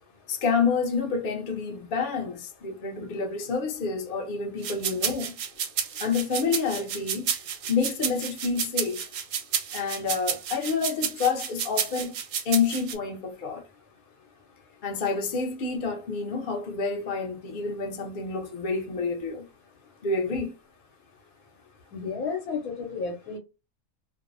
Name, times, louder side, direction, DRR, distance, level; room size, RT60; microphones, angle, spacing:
voice 1, 0.3-5.4 6.0-7.3 7.7-9.0 9.7-12.2 12.4-13.6 14.8-19.5 20.0-20.5, left 5 dB, 55° left, 0.6 m, -28 dB
sound 1, 4.6-12.9, right 8 dB, 85° right, 1.0 m, -30 dB
voice 2, 21.9-23.4, left 5 dB, 85° left, 1.1 m, -32 dB
2.6 x 2.0 x 2.5 m
omnidirectional pair, 1.4 m